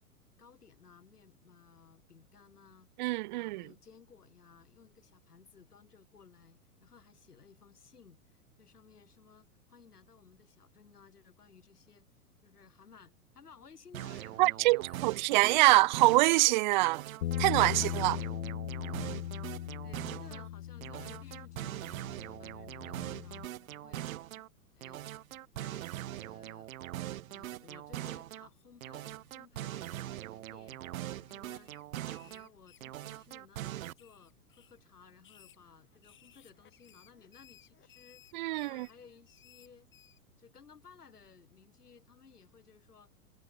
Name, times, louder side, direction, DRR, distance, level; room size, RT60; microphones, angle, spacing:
voice 1, 0.4-2.9 3.3-12.1 12.4-15.4 17.6-18.2 18.9-19.2 19.8-24.1 24.7-25.0 25.5-26.7 27.3-30.8 31.2-31.7 32.2-39.9 40.4-43.1, left 6 dB, 80° left, 4.9 m, -59 dB
voice 2, 3.0-3.6 14.4-17.0 17.4-18.2 38.3-38.9, right 20 dB, 35° right, 0.4 m, -25 dB
sound 1, 13.9-16.5 16.8-20.5 20.8-24.5 24.8-28.5 28.8-32.5 32.8-33.9, right 13 dB, 65° right, 0.7 m, -42 dB
Bass guitar, 17.2-23.5, left 12 dB, 65° left, 1.6 m, -39 dB
sound 2, 30.6-31.3 31.6-33.2 33.6-34.8 35.2-40.2, left 10 dB, 25° left, 8.0 m, -61 dB
figure-of-eight pair, 105°, 45 cm